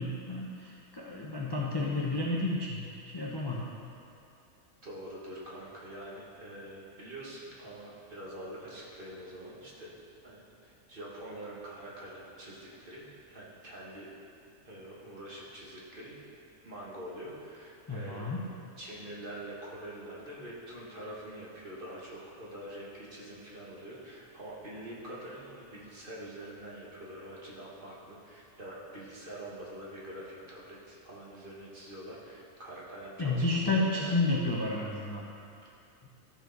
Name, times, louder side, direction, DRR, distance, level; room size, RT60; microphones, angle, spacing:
voice 1, 0.0-2.8 3.1-3.7 17.9-18.4 33.2-35.2, left 2 dB, 25° left, -4 dB, 0.6 m, -31 dB
voice 2, 4.8-9.9 10.2-14.1 14.6-16.2 16.6-18.4 18.8-33.4 33.7-34.2, right 1 dB, 40° right, -6 dB, 1.7 m, -45 dB
13.5 x 4.6 x 4.0 m, 2.5 s
omnidirectional pair, 1.4 m